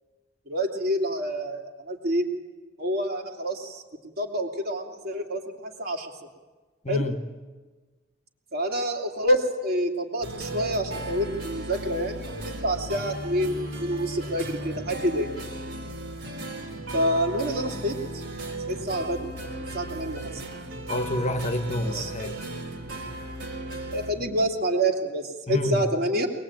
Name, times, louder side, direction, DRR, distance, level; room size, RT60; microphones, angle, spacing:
voice 1, 0.5-2.3 2.8-6.1 6.9-7.0 8.5-15.3 16.9-18.2 18.7-19.3 19.7-20.4 21.8-22.1 23.9-26.3, equal, 55° right, 2.9 m, -27 dB
voice 2, 6.8-7.2 20.9-22.4 25.5-25.8, left 1 dB, 35° left, 1.3 m, -28 dB
sound 1, 10.2-24.1, right 1 dB, 75° right, 3.7 m, -36 dB
23.0 x 20.5 x 8.9 m
head